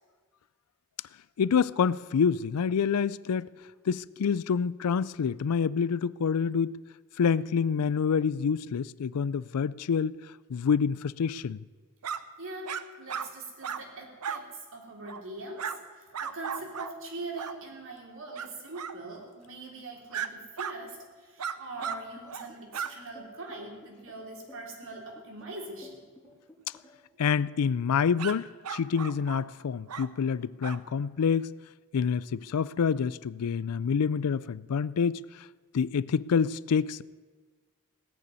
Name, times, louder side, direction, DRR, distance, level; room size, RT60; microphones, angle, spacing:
voice 1, 1.4-3.5 3.9-6.8 7.2-10.2 10.5-11.6 27.2-31.5 31.9-35.2 35.7-37.0, left 6 dB, 85° left, 0.4 m, -27 dB
sound 1, 12.0-12.2 12.7-12.8 13.1-13.3 13.6-13.8 14.2-14.4 15.0-15.2 15.6-15.8 16.1-16.9 17.4-17.6 18.4-18.5 18.7-19.0 20.1-20.3 20.6-20.7 21.4-22.0 22.3-22.5 22.7-22.9 28.2-28.4 28.6-29.4 29.9-30.1 30.6-30.8, right 7 dB, 85° right, 0.8 m, -35 dB
voice 2, 12.4-14.4 14.7-26.0, right 2 dB, 60° right, 3.4 m, -42 dB
sound 2, 21.8-27.1, left 1 dB, 5° left, 3.6 m, -54 dB
17.5 x 6.8 x 9.7 m
head